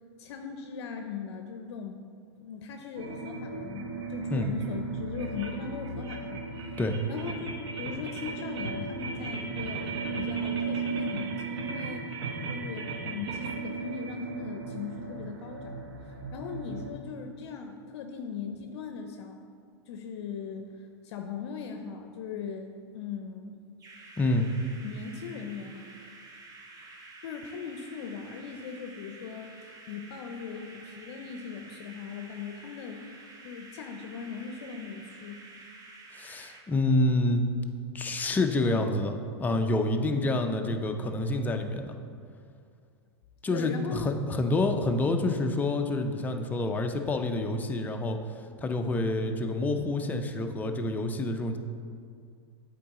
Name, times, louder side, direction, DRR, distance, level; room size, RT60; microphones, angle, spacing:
voice 1, 0.2-2.0 2.4-6.8 7.1-12.1 12.5-15.7 16.0-19.4 19.9-22.7 22.9-23.6 24.8-25.8 27.2-29.5 29.9-33.2 33.4-35.4 43.5-44.1, left 6 dB, 70° left, 4 dB, 0.5 m, -39 dB
sound 1, 2.9-16.9, right 4 dB, 70° right, 0.9 m, -36 dB
sound 2, 23.8-36.6, right 2 dB, 25° right, 0.8 m, -50 dB
voice 2, 24.2-24.5 36.1-37.4 37.9-42.0 43.4-48.2 48.6-51.6, left 2 dB, 10° left, 5 dB, 0.4 m, -28 dB
8.5 x 4.0 x 3.7 m, 2.2 s
hypercardioid pair, 125°, 14 cm